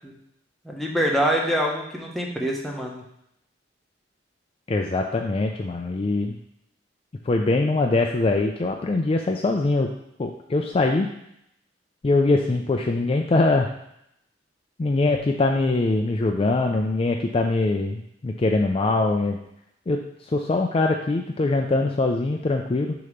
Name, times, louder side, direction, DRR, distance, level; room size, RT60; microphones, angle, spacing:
voice 1, 0.6-3.0, equal, ahead, -2 dB, 0.9 m, -25 dB
voice 2, 4.7-6.4 7.3-9.9 10.2-11.1 12.0-13.7 14.8-19.4 19.9-22.9, left 2 dB, 30° left, 2 dB, 0.4 m, -22 dB
6.5 x 3.0 x 5.1 m, 0.77 s
head